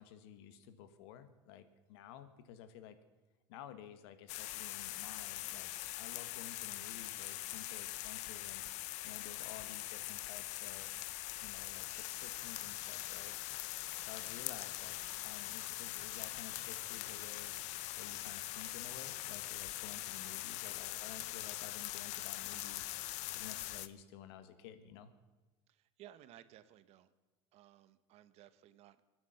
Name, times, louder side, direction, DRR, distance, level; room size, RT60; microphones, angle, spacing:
voice 1, 0.0-3.0 3.5-8.6 9.0-11.0 11.4-13.4 14.0-17.6 18.0-23.0 23.3-25.1, left 9 dB, 85° left, 11 dB, 1.6 m, -53 dB
sound 1, 4.3-23.9, left 16 dB, 60° left, 0.8 m, -42 dB
voice 2, 25.7-27.1 27.5-29.0, right 12 dB, 55° right, 13 dB, 1.1 m, -58 dB
24.0 x 9.6 x 5.9 m, 1.2 s
supercardioid pair, 130°, 13 cm